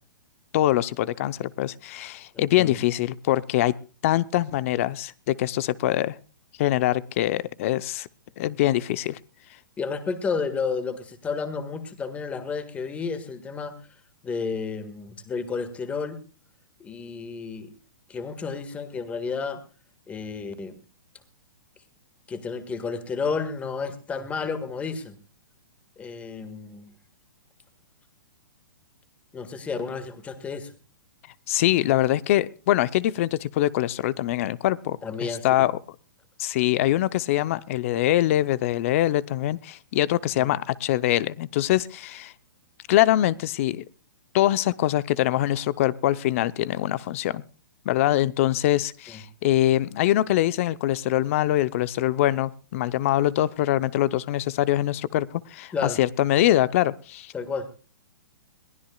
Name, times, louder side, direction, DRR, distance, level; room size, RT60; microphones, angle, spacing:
voice 1, 0.5-3.7 4.0-6.1 6.6-8.1 8.4-9.2 31.5-35.7 36.4-42.3 42.9-43.8 44.3-47.4 47.9-57.3, left 14 dB, 40° left, 18 dB, 0.6 m, -23 dB
voice 2, 2.3-2.7 9.8-13.8 14.2-16.2 16.8-17.7 18.1-19.6 20.1-20.8 22.3-25.2 26.0-26.9 29.3-30.7 35.0-35.5 40.3-40.5 49.1-49.2 55.7-56.0 57.3-57.7, left 5 dB, 10° left, 12 dB, 1.6 m, -31 dB
22.0 x 16.0 x 2.3 m, 0.37 s
hypercardioid pair, 155°, 11 cm